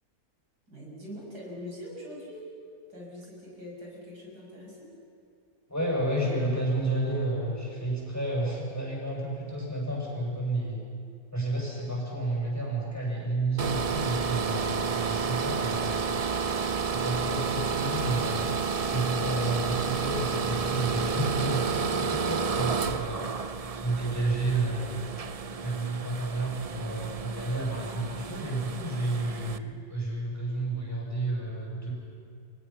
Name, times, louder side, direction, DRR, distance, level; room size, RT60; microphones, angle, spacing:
voice 1, 0.7-2.5 2.9-4.9, left 1 dB, 85° right, -3 dB, 6.8 m, -43 dB
voice 2, 5.7-10.8 11.3-16.2 16.9-18.5 18.9-23.3 23.8-25.1 25.6-31.9, right 2 dB, 10° left, -4 dB, 7.0 m, -31 dB
sound 1, 13.6-29.6, right 5 dB, 60° right, 0.3 m, -31 dB
30.0 x 24.0 x 5.9 m, 2.3 s
omnidirectional pair, 1.6 m